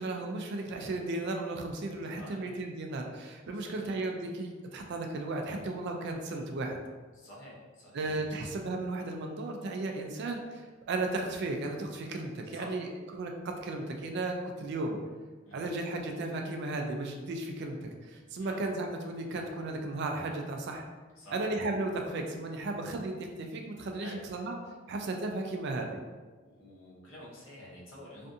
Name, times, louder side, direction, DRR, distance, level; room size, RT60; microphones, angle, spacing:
voice 1, 0.0-6.8 7.9-15.0 15.5-20.8 21.3-23.1 23.4-24.6 24.9-26.0, right 2 dB, 55° right, 3 dB, 0.3 m, -35 dB
voice 2, 2.2-2.5 3.5-3.9 7.1-8.1 12.5-12.8 15.4-15.7 18.4-18.6 21.2-21.4 24.0-24.2 26.4-28.3, left 1 dB, 75° left, -6 dB, 0.9 m, -49 dB
2.5 x 2.3 x 2.6 m, 1.3 s
head